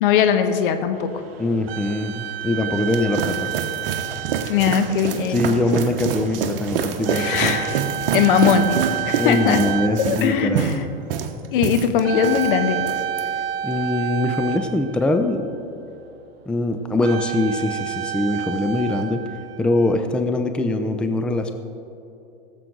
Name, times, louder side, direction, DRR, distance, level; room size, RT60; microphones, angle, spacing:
voice 1, 0.0-1.2 4.5-5.4 7.1-7.8 8.1-8.8 9.0-9.6 10.0-10.9 11.5-12.8, left 7 dB, 65° left, 8 dB, 1.1 m, -20 dB
sound 1, 0.9-15.4 16.9-20.2, right 10 dB, 85° right, 0.6 m, -31 dB
voice 2, 1.4-3.5 5.3-7.5 9.2-10.7 13.6-15.5 16.5-19.2 19.6-21.5, left 2 dB, 5° left, 6 dB, 0.5 m, -22 dB
sound 2, 2.6-12.5 12.8-13.2, right 7 dB, 70° right, 1.1 m, -26 dB
17.5 x 7.6 x 3.9 m, 2.8 s
hypercardioid pair, 110°, 29 cm